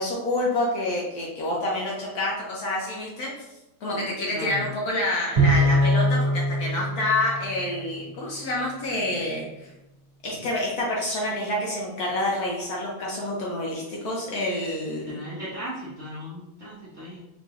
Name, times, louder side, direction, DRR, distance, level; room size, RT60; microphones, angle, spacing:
voice 1, 0.0-3.3 3.8-9.7 10.2-15.2, left 1 dB, 75° left, -3 dB, 0.8 m, -28 dB
voice 2, 4.3-4.7 15.1-17.2, equal, 90° right, -9 dB, 0.6 m, -36 dB
Bowed string instrument, 5.4-8.0, equal, 25° right, 1.4 m, -22 dB
3.8 x 3.0 x 2.4 m, 0.95 s
omnidirectional pair, 2.3 m